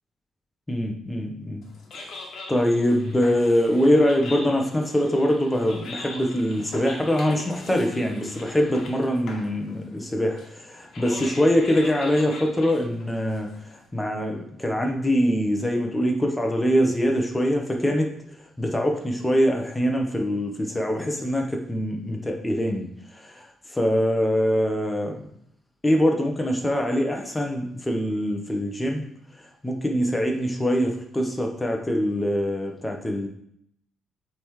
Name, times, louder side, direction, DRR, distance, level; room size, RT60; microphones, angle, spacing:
voice 1, 0.7-1.6 1.9-2.0 2.5-13.5 13.9-18.1 18.6-25.1 25.8-29.1 29.6-33.3, equal, 10° left, 2 dB, 1.0 m, -23 dB
sound 1, 1.6-13.9, left 3 dB, 65° left, 1.2 m, -41 dB
8.1 x 3.6 x 3.2 m, 0.72 s
cardioid pair, 90°, 0 cm